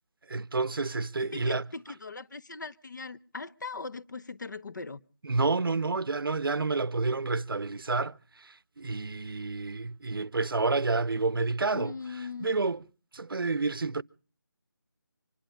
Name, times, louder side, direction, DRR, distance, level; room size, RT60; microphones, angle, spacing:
voice 1, 0.3-1.7 5.2-11.9 12.4-12.8 13.1-14.0, right 3 dB, 75° right, 0.7 m, -29 dB
voice 2, 1.2-5.0 11.7-12.5, left 4 dB, 55° left, 0.8 m, -40 dB
25.0 x 11.0 x 5.0 m
figure-of-eight pair, 170°, 12 cm